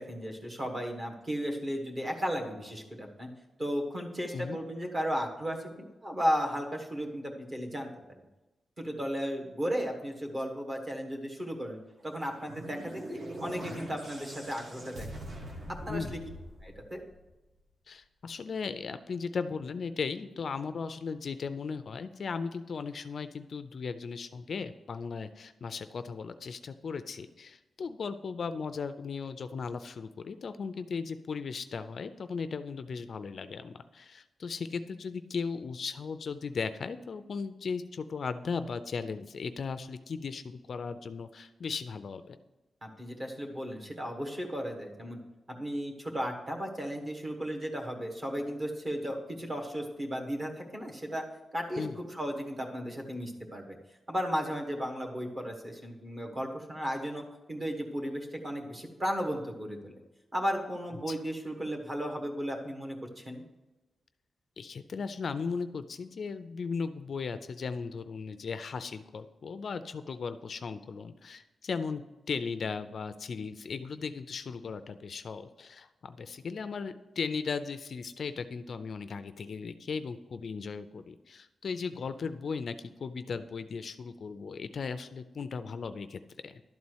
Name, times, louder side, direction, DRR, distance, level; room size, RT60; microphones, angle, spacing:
voice 1, 0.0-3.3 3.6-7.9 8.8-15.1 15.8-16.2 16.6-17.0 42.8-45.2 45.5-51.2 51.5-53.8 54.1-60.0 60.3-63.4, equal, 25° right, 2 dB, 1.3 m, -35 dB
sound 1, 12.1-17.4, right 1 dB, 45° right, 1.4 m, -43 dB
voice 2, 15.9-16.2 17.9-42.4 51.8-52.0 61.1-61.2 64.6-72.0 72.3-86.6, left 5 dB, 50° left, 11 dB, 0.4 m, -37 dB
12.0 x 4.2 x 7.9 m, 1.1 s
wide cardioid pair, 175°, 0 cm